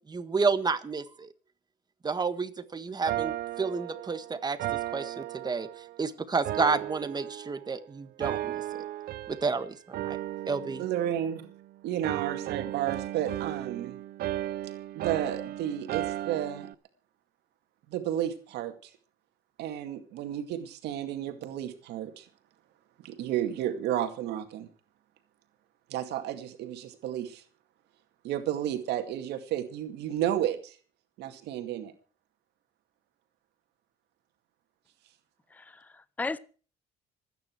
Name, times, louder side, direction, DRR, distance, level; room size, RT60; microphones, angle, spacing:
voice 1, 0.1-1.3 2.0-5.7 6.0-8.8 9.3-10.2 10.5-10.8, right 4 dB, 25° right, 1.5 m, -30 dB
sound 1, 3.1-6.0 6.4-7.8 8.2-9.6 9.9-11.7 12.0-16.7, right 14 dB, 65° right, 0.7 m, -35 dB
voice 2, 10.8-11.5 11.8-14.0 15.0-16.7 17.9-18.9 19.6-22.3 23.0-24.7 25.9-27.4 28.2-30.8 31.2-31.9, right 11 dB, 80° right, 2.2 m, -32 dB
voice 3, 35.5-36.4, left 3 dB, 10° left, 0.7 m, -36 dB
26.0 x 9.7 x 4.6 m
cardioid pair, 110°, 17 cm